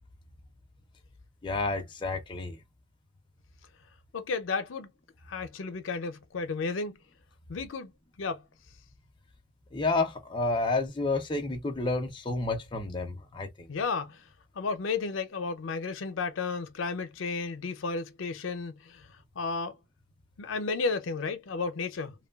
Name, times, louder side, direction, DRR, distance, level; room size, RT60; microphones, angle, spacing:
voice 1, 1.4-2.6 9.7-13.7, left 3 dB, 25° left, 0.5 m, -30 dB
voice 2, 4.1-4.9 5.3-7.0 7.5-7.9 8.2-8.4 13.7-14.2 14.6-19.0 19.4-19.8 20.4-22.1, left 4 dB, 85° left, 0.5 m, -33 dB
3.0 x 2.2 x 2.2 m
head